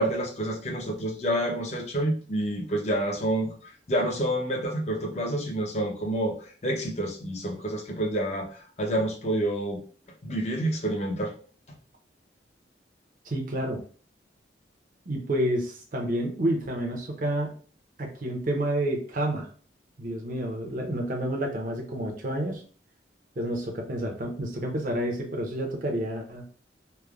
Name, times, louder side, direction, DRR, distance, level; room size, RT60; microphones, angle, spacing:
voice 1, 0.0-3.5 3.9-6.3 6.6-9.8 10.2-11.3, right 1 dB, 40° left, 1 dB, 0.6 m, -28 dB
voice 2, 13.2-13.8 15.1-17.6 18.0-19.5 20.0-22.6 23.4-26.4, right 1 dB, 50° right, 0 dB, 0.6 m, -29 dB
3.1 x 2.0 x 2.3 m, 0.41 s
head